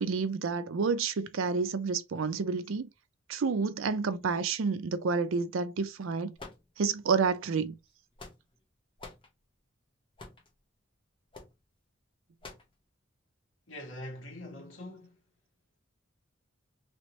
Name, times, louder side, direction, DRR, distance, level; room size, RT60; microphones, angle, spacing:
voice 1, 0.0-2.9 3.3-6.3 6.8-7.7, right 5 dB, 80° right, 0.5 m, -29 dB
sound 1, 6.4-7.1 7.9-8.6 9.0-9.3 10.2-10.5 11.3-11.6 12.4-12.7, left 3 dB, 25° left, 0.8 m, -47 dB
voice 2, 13.7-15.2, left 1 dB, 70° left, 1.6 m, -43 dB
3.0 x 2.9 x 3.1 m
head